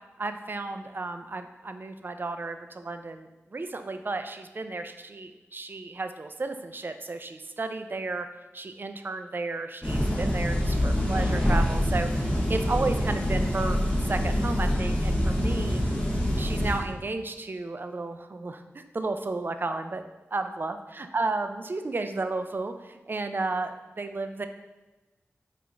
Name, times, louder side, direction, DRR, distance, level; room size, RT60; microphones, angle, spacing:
voice 1, 0.2-8.3 8.5-12.1 12.5-13.8 14.1-15.8 16.4-20.0 20.3-20.8 21.1-24.5, right 3 dB, 45° right, 8 dB, 0.3 m, -33 dB
sound 1, 9.8-16.8, equal, 20° left, 1.0 m, -25 dB
3.7 x 2.5 x 4.4 m, 1.1 s
cardioid pair, 45°, 5 cm